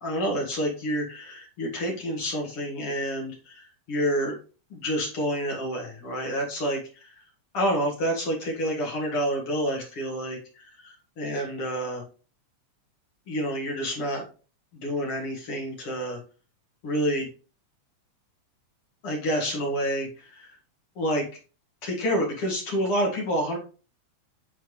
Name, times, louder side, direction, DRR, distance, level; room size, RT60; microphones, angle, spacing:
voice 1, 0.0-4.3 4.7-7.1 7.5-12.0 13.3-14.2 14.7-16.2 16.8-17.3 19.0-20.5 21.0-21.2 21.8-23.6, equal, 50° left, -1 dB, 2.7 m, -28 dB
9.1 x 4.4 x 3.2 m, 0.36 s
omnidirectional pair, 3.4 m